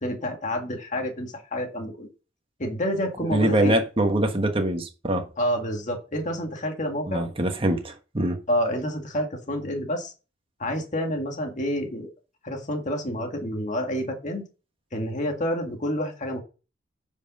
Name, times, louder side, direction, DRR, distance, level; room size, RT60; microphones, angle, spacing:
voice 1, 0.0-2.1 2.6-3.8 5.4-7.3 8.5-10.1 10.6-12.1 12.4-14.4 14.9-16.4, equal, 40° left, 1.9 m, -28 dB
voice 2, 3.2-5.3 7.1-8.4, right 1 dB, 30° right, 1.3 m, -24 dB
9.6 x 5.5 x 5.4 m
head